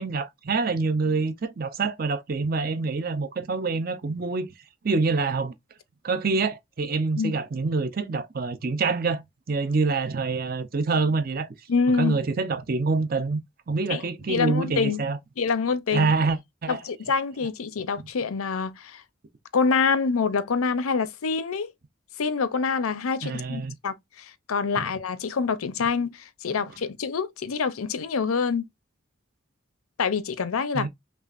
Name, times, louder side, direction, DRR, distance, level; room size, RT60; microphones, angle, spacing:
voice 1, 0.0-4.5 4.8-5.5 6.0-9.2 9.5-11.5 11.9-13.4 13.7-15.2 15.9-16.8 23.2-23.7 24.8-24.9 26.5-26.6 30.7-30.9, right 4 dB, 45° right, 0.5 m, -26 dB
voice 2, 11.7-12.1 13.9-14.0 14.3-15.0 15.4-16.1 16.7-19.0 19.5-21.7 22.2-28.7 30.0-30.9, left 5 dB, 90° left, 0.6 m, -26 dB
5.5 x 2.4 x 2.4 m
head